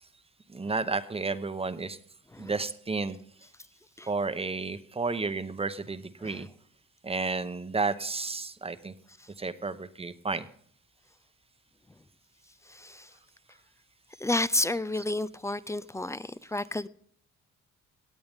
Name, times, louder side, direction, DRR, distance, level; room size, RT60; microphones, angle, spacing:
voice 1, 0.5-2.0 2.4-3.2 4.1-6.5 7.0-8.9 9.4-10.4, right 4 dB, 20° right, 0.8 m, -32 dB
voice 2, 12.6-13.1 14.2-16.9, left 2 dB, 10° left, 0.4 m, -31 dB
17.5 x 8.7 x 3.5 m
cardioid pair, 90°, 30 cm